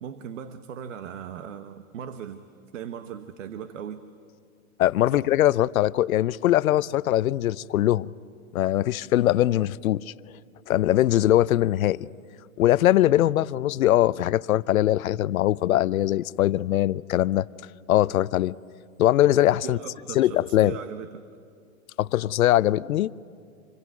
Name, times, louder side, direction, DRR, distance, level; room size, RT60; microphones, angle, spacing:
voice 1, 0.0-2.5 2.7-4.0 5.1-5.3 19.6-21.2, right 8 dB, 60° right, 1.2 m, -38 dB
voice 2, 4.8-8.1 8.5-10.0 10.7-12.1 12.6-17.5 17.9-18.5 19.0-19.8 20.1-20.7 22.0-23.1, left 13 dB, 75° left, 0.7 m, -21 dB
27.0 x 22.5 x 9.5 m
hypercardioid pair, 165°, 43 cm